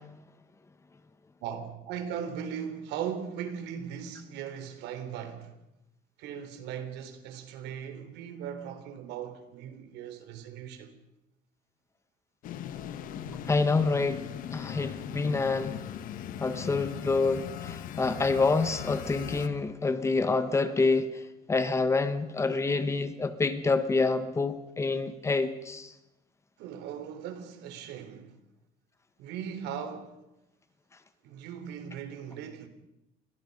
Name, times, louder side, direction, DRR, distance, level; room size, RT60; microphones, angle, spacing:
voice 1, 1.4-5.5 6.2-11.0 26.6-28.4 29.2-30.2 31.2-32.7, right 8 dB, 80° right, 3.6 m, -38 dB
sound 1, 12.4-19.5, left 9 dB, 50° left, 1.5 m, -39 dB
voice 2, 13.5-15.7 16.4-21.1 21.5-25.9, left 3 dB, 15° left, 1.3 m, -27 dB
30.0 x 22.5 x 5.4 m
cardioid pair, 165°, 17 cm